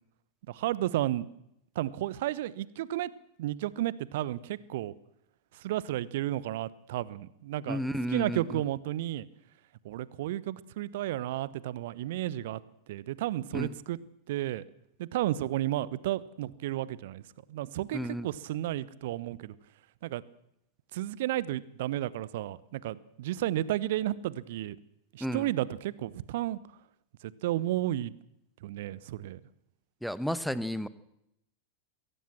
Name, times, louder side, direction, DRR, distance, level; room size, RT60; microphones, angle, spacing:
voice 1, 0.5-1.3 1.7-3.1 3.4-4.9 5.5-7.8 8.1-9.2 9.8-12.6 12.9-14.0 14.3-14.6 15.0-17.2 17.5-19.5 20.0-20.2 20.9-24.8 25.1-26.6 27.4-28.1 28.6-29.4, right 14 dB, 55° right, 20 dB, 1.0 m, -32 dB
voice 2, 7.7-8.6 13.5-13.7 17.9-18.3 25.2-25.5 30.0-30.9, equal, ahead, 16 dB, 1.1 m, -32 dB
23.0 x 17.0 x 7.5 m, 0.81 s
figure-of-eight pair, 90°, 0 cm